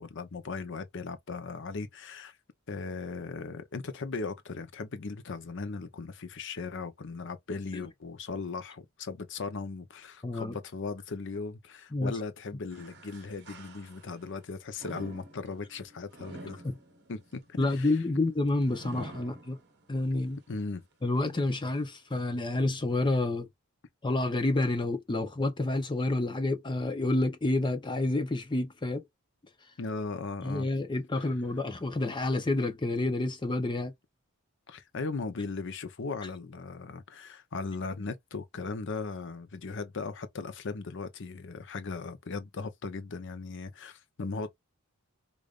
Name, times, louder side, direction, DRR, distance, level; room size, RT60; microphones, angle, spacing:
voice 1, 0.0-2.4 2.7-16.6 17.1-18.0 20.5-20.8 29.8-30.7 31.1-31.3 34.7-44.5, left 4 dB, 60° left, 0.7 m, -38 dB
voice 2, 10.2-10.6 11.9-12.1 16.6-16.7 17.6-19.6 19.9-20.4 21.0-23.5 24.0-29.0 30.4-33.9, left 2 dB, 20° left, 0.6 m, -29 dB
sound 1, 12.7-14.3 14.8-20.0 20.5-20.6 21.5-21.6, right 1 dB, 50° right, 1.2 m, -48 dB
4.9 x 2.5 x 2.4 m
head